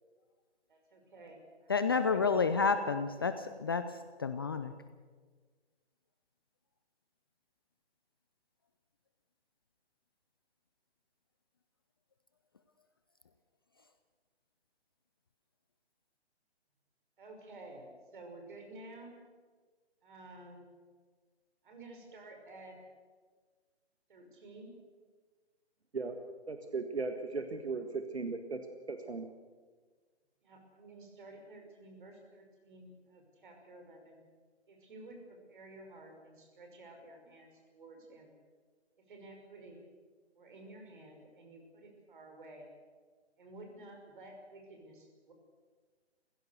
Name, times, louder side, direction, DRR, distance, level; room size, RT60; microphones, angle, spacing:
voice 1, 0.7-2.7 17.2-17.9 18.1-19.1 20.0-20.7 21.6-22.8 24.1-24.7 30.4-34.3 34.7-38.4 39.0-39.8 40.3-42.7 43.4-45.3, right 2 dB, 50° right, 3 dB, 6.0 m, -52 dB
voice 2, 1.7-4.7, left 5 dB, 20° left, 11 dB, 0.5 m, -30 dB
voice 3, 26.5-28.6 28.9-29.3, right 4 dB, 70° right, 6 dB, 1.8 m, -37 dB
27.0 x 16.0 x 6.7 m, 1.5 s
figure-of-eight pair, 135°, 33 cm